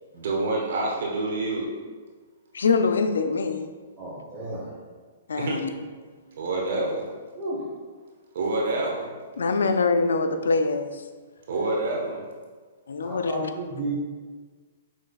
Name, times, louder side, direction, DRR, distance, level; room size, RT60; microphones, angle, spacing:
voice 1, 0.1-1.7 5.4-5.6 6.3-7.1 8.3-9.1 11.5-12.2, right 2 dB, 65° right, -2 dB, 1.1 m, -27 dB
voice 2, 2.5-3.6 5.3-5.7 9.4-11.0 12.9-13.5, left 4 dB, 85° left, 8 dB, 0.4 m, -24 dB
voice 3, 4.0-4.7 7.3-7.7 13.0-14.0, right 2 dB, 20° right, -9 dB, 1.2 m, -33 dB
6.3 x 3.1 x 2.3 m, 1.5 s
hypercardioid pair, 135°, 0 cm